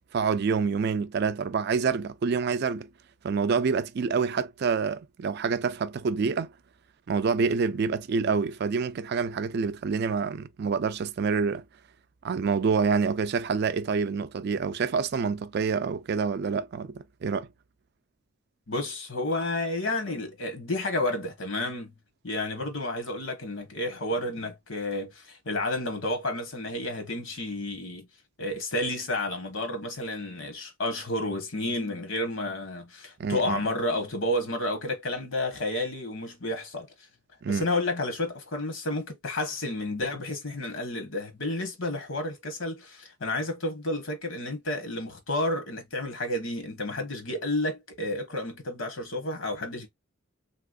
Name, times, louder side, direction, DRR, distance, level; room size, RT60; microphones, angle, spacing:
voice 1, 0.1-2.9 3.2-6.5 7.1-11.6 12.2-17.5 33.2-33.6 37.4-37.7, right 5 dB, 50° right, 0.4 m, -27 dB
voice 2, 18.7-21.9 22.2-28.1 28.4-36.9 37.5-49.9, left 1 dB, 65° left, 1.2 m, -31 dB
3.4 x 3.0 x 2.4 m
head